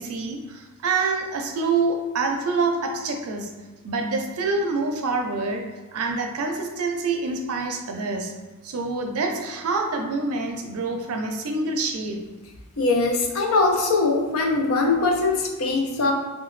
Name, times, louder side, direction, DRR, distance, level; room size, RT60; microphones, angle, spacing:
voice 1, 0.0-3.5 3.8-8.3 8.6-12.3, right 3 dB, 85° right, 3 dB, 0.5 m, -26 dB
voice 2, 12.8-16.1, left 3 dB, 70° left, 2 dB, 0.5 m, -21 dB
2.7 x 2.2 x 3.1 m, 1.3 s
head